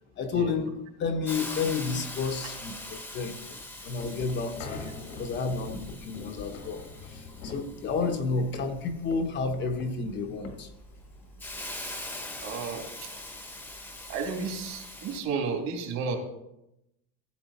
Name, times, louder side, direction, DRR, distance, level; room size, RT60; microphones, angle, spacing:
voice 1, 0.2-3.4 3.8-10.7, left 4 dB, 35° left, 5 dB, 0.9 m, -31 dB
Hiss, 1.3-15.2, left 1 dB, 5° left, 1.0 m, -42 dB
sound 1, 3.5-11.5, left 3 dB, 80° left, 2.0 m, -44 dB
voice 2, 12.4-12.8 14.1-16.2, right 5 dB, 55° right, 2 dB, 2.7 m, -32 dB
15.0 x 7.6 x 4.2 m, 0.85 s
cardioid pair, 165°, 34 cm